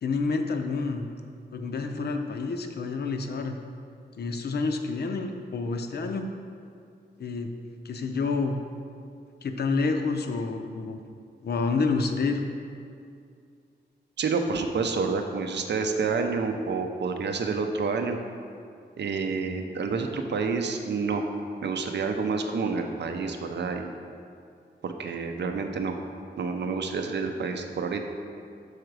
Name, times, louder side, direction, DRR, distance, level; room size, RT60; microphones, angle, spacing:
voice 1, 0.0-1.1 1.5-3.6 4.2-6.3 7.2-7.5 7.8-8.6 9.4-11.0 11.4-12.4, left 4 dB, 65° left, 5 dB, 0.5 m, -28 dB
voice 2, 14.2-18.2 19.0-21.3 21.6-24.0 24.8-26.0 26.4-28.0, right 4 dB, 75° right, 5 dB, 0.5 m, -28 dB
6.5 x 4.9 x 4.7 m, 2.4 s
wide cardioid pair, 180°, 18 cm